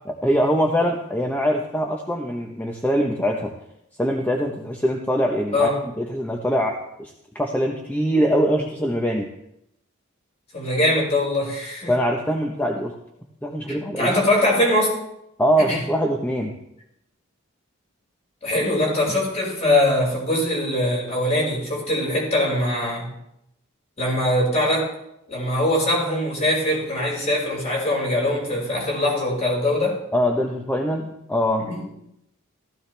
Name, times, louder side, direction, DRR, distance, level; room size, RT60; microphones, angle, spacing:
voice 1, 0.2-3.5 4.0-5.7 6.0-9.3 11.9-13.0 13.4-14.1 15.4-16.6 30.1-31.7, equal, 10° left, 1 dB, 1.0 m, -23 dB
voice 2, 10.5-11.9 13.7-14.9 15.7-15.8 18.4-23.1 24.0-24.9 25.3-30.0 31.6-31.8, left 1 dB, 30° left, -3 dB, 5.6 m, -22 dB
15.5 x 14.5 x 3.4 m, 0.80 s
head